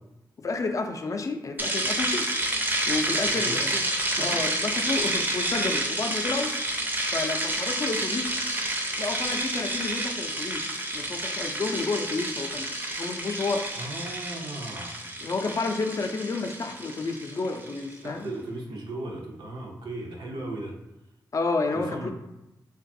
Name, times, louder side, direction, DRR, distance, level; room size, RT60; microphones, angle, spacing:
voice 1, 0.4-2.3 2.9-3.7 4.2-6.5 7.1-8.5 9.0-13.7 15.2-18.3 21.3-22.1, left 3 dB, 40° left, 5 dB, 0.4 m, -30 dB
sound 1, 1.6-17.9, right 1 dB, 25° right, 0.5 m, -29 dB
voice 2, 3.2-4.4 13.8-14.9 18.0-20.8 21.7-22.1, right 2 dB, 85° right, -1 dB, 0.5 m, -37 dB
2.5 x 2.3 x 2.6 m, 0.94 s
cardioid pair, 50°, 8 cm